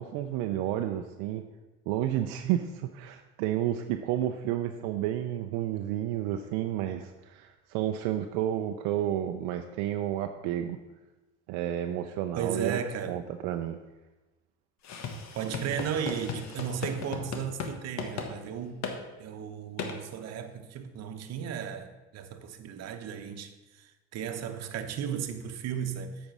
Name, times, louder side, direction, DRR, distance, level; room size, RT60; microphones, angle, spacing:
voice 1, 0.0-1.4 1.9-10.8 11.5-12.8 13.1-13.8, right 12 dB, 80° right, 0.6 m, -31 dB
voice 2, 12.4-13.2 15.3-18.8 19.2-26.2, right 8 dB, 60° right, 1.0 m, -35 dB
sound 1, 14.8-17.7 18.0-18.3 18.8-19.0 19.8-20.0, left 5 dB, 65° left, 1.4 m, -36 dB
8.6 x 5.3 x 6.1 m
supercardioid pair, 80°, 30 cm